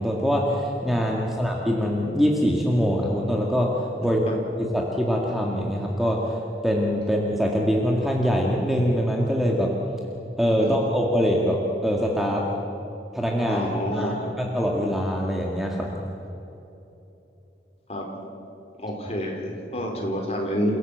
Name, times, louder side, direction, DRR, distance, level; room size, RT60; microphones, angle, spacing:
voice 1, 0.0-3.7 4.0-4.2 4.6-6.2 6.6-9.7 10.4-12.4 13.1-15.9, equal, ahead, -1 dB, 2.0 m, -23 dB
voice 2, 13.5-14.1 17.9-18.0 18.8-20.8, equal, 35° left, 1 dB, 4.1 m, -28 dB
29.5 x 17.0 x 8.1 m, 3.0 s
head